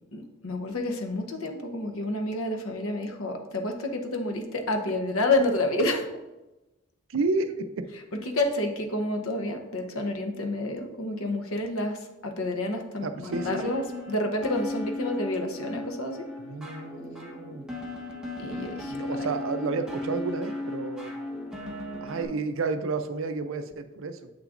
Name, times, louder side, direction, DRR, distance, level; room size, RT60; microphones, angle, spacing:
voice 1, 0.1-6.1 8.3-16.2 18.4-19.3, left 2 dB, 80° left, 5 dB, 0.8 m, -29 dB
voice 2, 7.1-7.9 13.0-13.8 16.4-17.8 18.9-21.1 22.0-24.3, right 3 dB, 70° right, 9 dB, 0.5 m, -31 dB
sound 1, 13.3-22.2, left 2 dB, 5° right, 0.9 m, -36 dB
7.4 x 6.0 x 2.5 m, 1.0 s
head